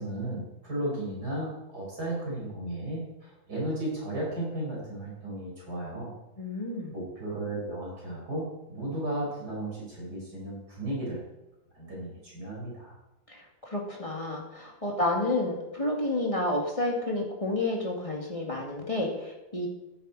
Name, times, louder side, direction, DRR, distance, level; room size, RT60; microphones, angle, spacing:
voice 1, 0.0-6.1 6.9-11.2 11.7-12.9, right 1 dB, 55° right, -4 dB, 5.4 m, -34 dB
voice 2, 6.4-7.0 13.3-19.7, left 2 dB, 15° left, -1 dB, 2.2 m, -30 dB
14.0 x 11.0 x 4.1 m, 0.98 s
omnidirectional pair, 2.0 m